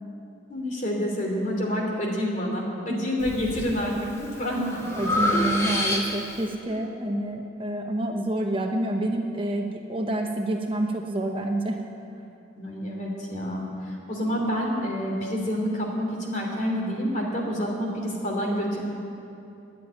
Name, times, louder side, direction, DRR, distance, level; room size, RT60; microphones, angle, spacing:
voice 1, 0.5-4.9 5.3-5.6 12.5-18.8, equal, 40° left, 0 dB, 3.0 m, -28 dB
Breathing, 3.2-3.7 4.2-6.4, left 1 dB, 15° left, 1.8 m, -27 dB
voice 2, 5.0-11.8, right 1 dB, 25° right, 2 dB, 0.9 m, -28 dB
14.0 x 10.0 x 10.0 m, 2.7 s
head